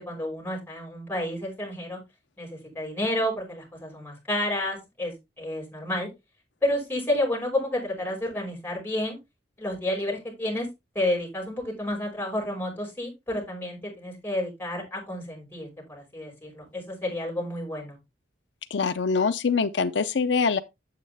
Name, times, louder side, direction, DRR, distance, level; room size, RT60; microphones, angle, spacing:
voice 1, 0.0-2.0 2.4-6.1 6.6-9.2 9.6-10.7 10.9-18.0, left 1 dB, 10° left, 5.6 m, -30 dB
voice 2, 18.7-20.6, left 5 dB, 85° left, 0.6 m, -24 dB
8.7 x 7.6 x 3.4 m
head